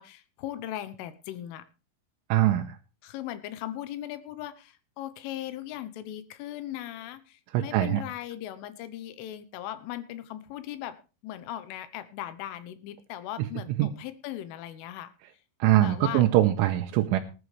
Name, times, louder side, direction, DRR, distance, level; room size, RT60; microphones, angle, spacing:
voice 1, 0.0-1.7 3.0-15.1 15.8-16.2, left 12 dB, 80° left, 12 dB, 3.5 m, -38 dB
voice 2, 2.3-2.8 7.5-8.0 13.8-13.9 15.6-17.2, right 14 dB, 80° right, 3 dB, 3.2 m, -22 dB
19.5 x 11.0 x 3.4 m, 0.34 s
omnidirectional pair, 5.7 m